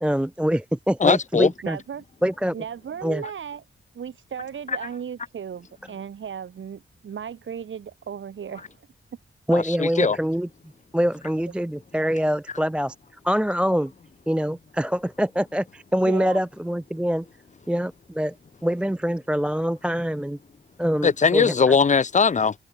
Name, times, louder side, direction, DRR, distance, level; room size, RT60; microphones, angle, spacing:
voice 1, 0.0-1.8 2.2-2.6 3.0-3.2 9.5-10.5 10.9-12.9 13.2-13.9 14.3-17.3 17.7-18.3 18.6-20.4 20.8-21.5, equal, 5° right, 0.3 m, -24 dB
voice 2, 1.0-1.5 9.5-10.2 21.0-22.5, left 5 dB, 35° left, 0.9 m, -20 dB
voice 3, 1.6-2.0 2.5-3.6 3.9-8.8 16.0-16.4, right 8 dB, 70° right, 1.4 m, -35 dB
wide cardioid pair, 170°, 20 cm